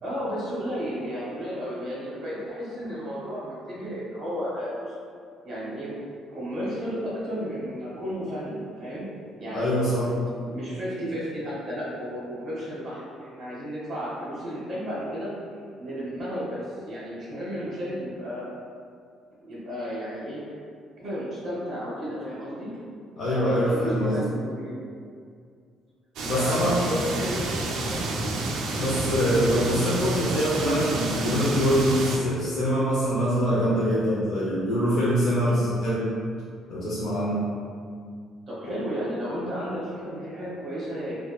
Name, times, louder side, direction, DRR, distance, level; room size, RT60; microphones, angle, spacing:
voice 1, 0.0-4.9 5.4-5.9 6.3-9.1 9.3-10.1 10.4-15.3 15.8-18.5 19.4-20.6 21.0-22.7 23.3-24.8 26.3-28.2 28.7-28.9 29.1-29.3 38.5-41.2, equal, 35° right, -7 dB, 0.9 m, -33 dB
voice 2, 9.5-10.1 23.2-24.2 26.2-26.8 28.8-36.1 36.7-37.4 38.6-38.8, equal, 45° left, -10 dB, 0.4 m, -24 dB
sound 1, 26.2-32.2, right 2 dB, 60° right, 0.3 m, -29 dB
2.6 x 2.2 x 2.2 m, 2.2 s
cardioid pair, 175°, 0 cm